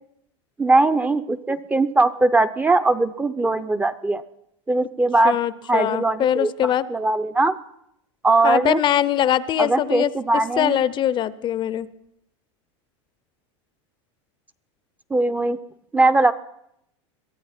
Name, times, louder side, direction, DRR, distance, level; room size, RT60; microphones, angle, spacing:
voice 1, 0.6-4.2 4.7-5.4 5.7-6.5 6.9-7.5 8.2-8.8 9.6-10.8 15.1-15.6 15.9-16.3, right 2 dB, 10° right, 11 dB, 0.6 m, -20 dB
voice 2, 5.2-6.9 8.4-10.1 10.6-11.9, left 11 dB, 30° left, 17 dB, 0.6 m, -22 dB
22.5 x 14.0 x 4.3 m, 0.78 s
supercardioid pair, 120°, 15 cm